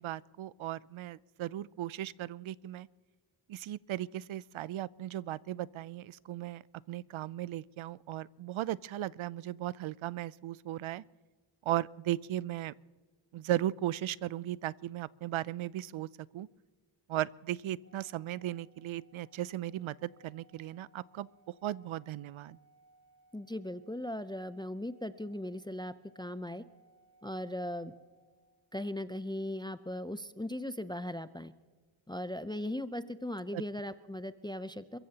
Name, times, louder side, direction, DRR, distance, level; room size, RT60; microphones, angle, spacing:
voice 1, 0.0-2.9 3.5-11.0 11.7-12.7 13.3-16.1 16.3-16.5 17.1-21.3 21.6-22.6 33.5-33.6, right 13 dB, 85° right, 21 dB, 0.5 m, -36 dB
Organ, 17.8-28.7, right 2 dB, 30° right, 3.0 m, -66 dB
voice 2, 23.3-26.6 27.2-27.9 28.7-31.5 32.1-35.0, left 1 dB, 10° left, 13 dB, 0.5 m, -38 dB
29.0 x 15.0 x 2.9 m, 1.4 s
wide cardioid pair, 90°, 47 cm